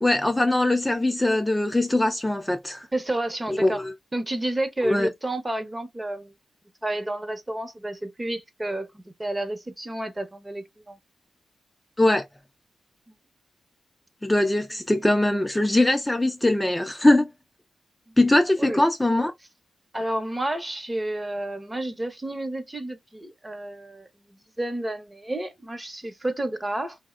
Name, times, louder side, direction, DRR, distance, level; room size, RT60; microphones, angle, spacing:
voice 1, 0.0-2.9 3.5-3.9 4.8-5.1 12.0-12.2 14.2-17.3 18.2-19.3, left 1 dB, 15° left, 0.4 m, -21 dB
voice 2, 2.9-3.8 4.1-6.3 6.8-11.0 13.1-13.2 18.1-18.2 18.6-18.8 19.9-27.0, right 1 dB, 20° right, 0.8 m, -30 dB
2.7 x 2.1 x 2.3 m
supercardioid pair, 50°, 0 cm